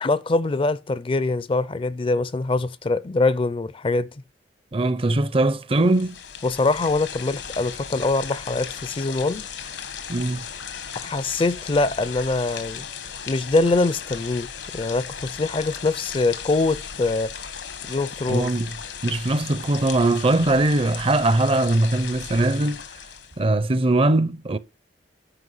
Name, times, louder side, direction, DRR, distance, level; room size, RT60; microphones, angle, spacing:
voice 1, 0.0-4.1 6.4-9.5 11.0-12.9 13.3-17.3 17.8-18.5, left 3 dB, 30° left, 0.4 m, -23 dB
voice 2, 4.7-6.2 10.1-10.5 18.3-18.7 19.0-22.8 23.4-24.6, right 2 dB, 30° right, 0.5 m, -21 dB
sound 1, 5.8-23.4, left 7 dB, 75° left, 1.2 m, -36 dB
9.9 x 5.1 x 5.5 m
head